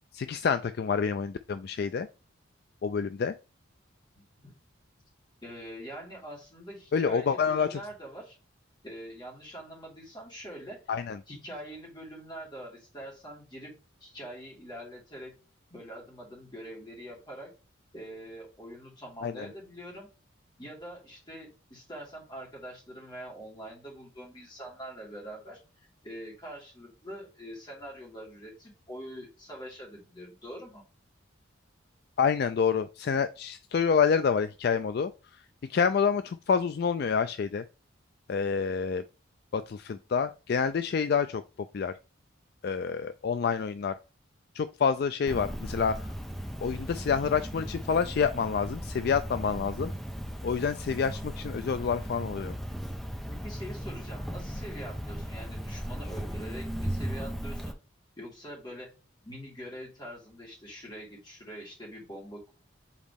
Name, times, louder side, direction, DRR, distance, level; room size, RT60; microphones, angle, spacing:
voice 1, 0.1-2.1 2.8-3.3 6.9-7.8 10.9-11.2 19.2-19.5 32.2-35.1 35.7-37.6 38.3-39.0 39.5-41.4 41.7-41.9 42.6-43.9 44.5-46.0 46.6-49.9 50.4-52.5, left 6 dB, 50° left, 0.3 m, -27 dB
voice 2, 4.1-4.5 5.4-8.4 8.8-10.8 11.3-13.7 14.0-15.3 15.7-17.5 17.9-20.1 20.6-30.8 53.3-57.8 58.2-58.9 59.2-62.5, equal, 20° left, 2.9 m, -44 dB
Cricket, 45.3-57.7, equal, ahead, 0.7 m, -37 dB
7.2 x 4.1 x 3.5 m
head